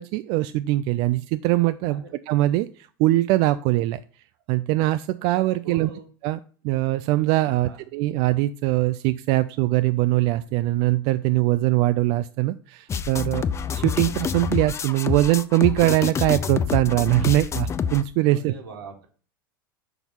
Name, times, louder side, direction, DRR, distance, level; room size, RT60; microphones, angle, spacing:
voice 1, 0.0-4.0 4.5-5.9 6.2-13.5 13.7-18.5, right 17 dB, 50° right, 12 dB, 0.4 m, -22 dB
voice 2, 5.6-6.1 7.5-7.8 18.3-19.1, right 4 dB, 80° right, 3 dB, 1.9 m, -41 dB
sound 1, 12.9-18.0, left 7 dB, 25° left, 0.5 m, -27 dB
6.0 x 4.5 x 5.4 m, 0.41 s
hypercardioid pair, 90°, 12 cm